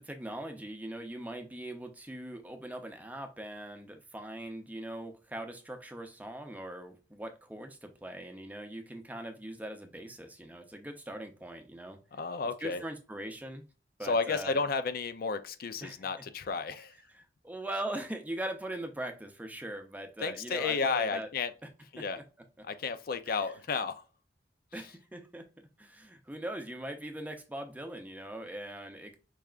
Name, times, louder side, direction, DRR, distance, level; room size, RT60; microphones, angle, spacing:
voice 1, 0.0-12.0 12.6-13.6 14.0-14.6 15.8-16.1 17.1-21.3 23.3-23.4 24.7-29.2, right 1 dB, 10° right, 0.6 m, -41 dB
voice 2, 12.1-12.8 14.0-17.0 20.2-21.5 21.9-22.2 22.6-24.0 24.7-24.9, left 4 dB, 55° left, 0.4 m, -32 dB
4.8 x 3.3 x 2.4 m
head